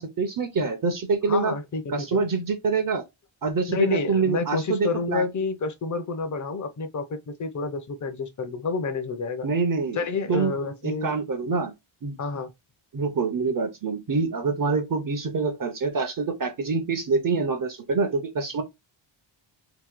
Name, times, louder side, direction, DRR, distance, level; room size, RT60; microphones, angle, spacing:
voice 1, 0.0-1.5 1.9-3.0 3.4-5.2 9.4-10.0 10.3-10.5 10.8-11.7 12.0-12.2 12.9-18.6, right 4 dB, 45° right, 0.7 m, -25 dB
voice 2, 1.3-2.2 3.7-9.5 9.9-11.1 12.2-12.5, left 4 dB, 40° left, 0.7 m, -29 dB
2.9 x 2.7 x 3.7 m
wide cardioid pair, 145°, 48 cm